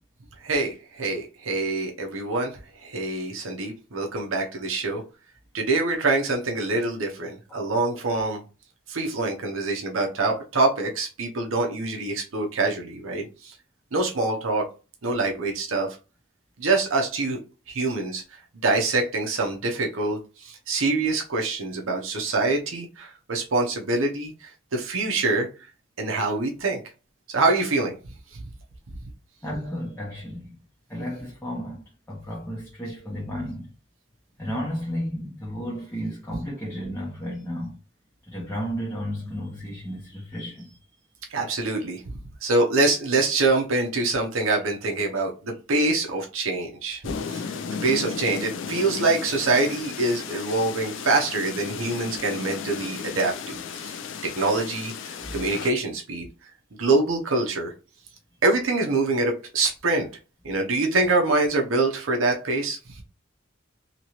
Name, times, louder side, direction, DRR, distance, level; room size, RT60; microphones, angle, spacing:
voice 1, 0.4-5.0 5.5-8.4 8.9-13.6 13.9-14.7 15.0-15.9 16.6-17.4 17.7-25.5 26.0-26.8 27.3-27.9 41.3-54.0 54.3-56.3 56.8-57.7 58.4-60.1 60.4-63.0, right 3 dB, 80° right, 0.7 m, -25 dB
voice 2, 29.4-30.6 30.9-33.7 34.4-37.8 38.3-40.8 55.1-55.3, equal, 10° left, 0.7 m, -33 dB
sound 1, 47.0-55.7, left 6 dB, 65° left, 0.4 m, -34 dB
3.0 x 2.9 x 2.8 m
head